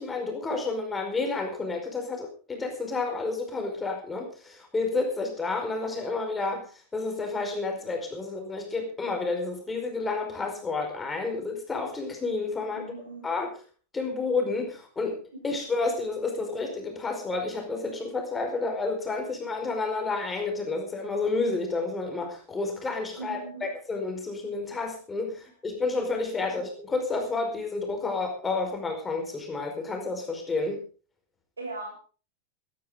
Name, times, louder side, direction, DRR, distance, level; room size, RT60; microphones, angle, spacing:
voice 1, 0.0-6.7 6.9-12.8 13.2-13.5 13.9-30.8, left 3 dB, 15° left, 3 dB, 4.9 m, -30 dB
voice 2, 12.6-13.2 15.3-15.4 23.2-23.7 25.3-25.4 31.6-31.9, right 3 dB, 75° right, 2 dB, 6.7 m, -39 dB
18.5 x 13.0 x 3.9 m, 0.37 s
figure-of-eight pair, 90°, 0 cm